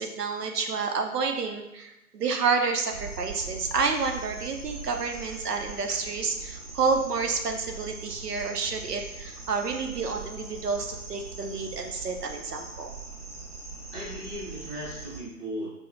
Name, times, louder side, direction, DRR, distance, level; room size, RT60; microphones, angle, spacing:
voice 1, 0.0-12.9, right 4 dB, 85° right, 4 dB, 0.6 m, -29 dB
sound 1, 2.9-15.2, right 4 dB, 40° right, 0.8 m, -41 dB
voice 2, 13.9-15.7, equal, 10° left, -14 dB, 0.6 m, -37 dB
4.4 x 2.0 x 2.5 m, 0.91 s
figure-of-eight pair, 140°, 46 cm